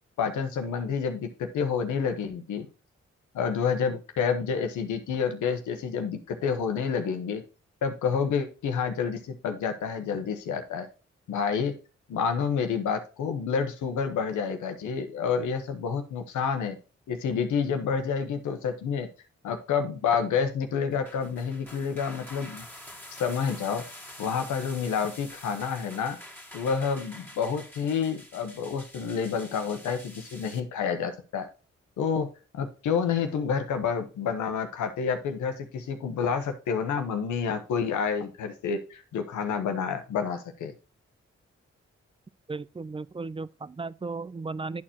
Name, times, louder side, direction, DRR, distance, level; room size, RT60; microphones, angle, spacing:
voice 1, 0.2-2.7 3.3-7.4 7.8-10.9 11.3-11.7 12.1-16.8 17.1-19.1 19.4-22.6 23.1-23.8 24.2-26.2 26.5-31.5 32.0-32.3 32.5-40.7, left 6 dB, 90° left, 1.0 m, -29 dB
sound 1, 20.9-30.6, left 1 dB, 5° left, 1.9 m, -47 dB
voice 2, 42.5-44.8, right 3 dB, 20° right, 0.5 m, -35 dB
10.5 x 4.4 x 2.9 m
supercardioid pair, 45°, 29 cm